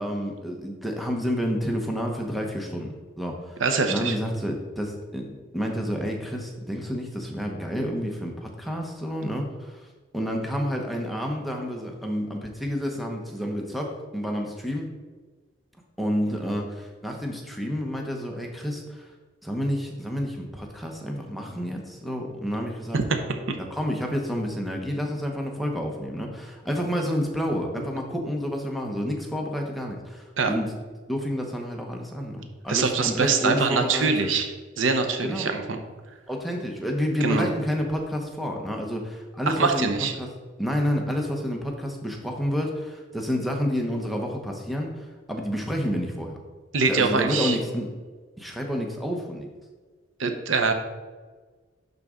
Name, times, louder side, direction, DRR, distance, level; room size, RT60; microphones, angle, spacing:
voice 1, 0.0-3.6 3.9-9.9 10.1-14.9 16.0-19.1 19.4-23.0 23.6-30.7 31.1-34.3 35.2-35.5 36.3-40.3 40.6-46.4 46.9-47.9 48.4-49.5, equal, ahead, 1 dB, 0.8 m, -29 dB
voice 2, 3.6-4.2 22.9-23.0 23.5-23.6 30.4-30.5 32.7-34.5 34.8-35.8 37.2-37.5 39.5-40.1 46.7-47.6 50.2-50.7, right 4 dB, 80° right, 6 dB, 0.8 m, -23 dB
11.0 x 4.0 x 3.7 m, 1.4 s
head